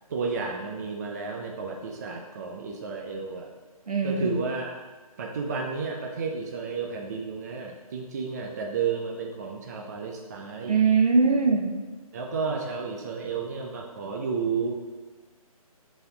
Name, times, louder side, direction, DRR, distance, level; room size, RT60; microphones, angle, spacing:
voice 1, 0.1-3.5 4.0-4.8 5.2-10.8 12.1-14.8, right 5 dB, 25° right, 0 dB, 0.5 m, -32 dB
voice 2, 3.9-4.4 10.6-11.6, right 4 dB, 75° right, 0 dB, 1.6 m, -21 dB
10.5 x 4.0 x 3.9 m, 1.3 s
figure-of-eight pair, 150°, 19 cm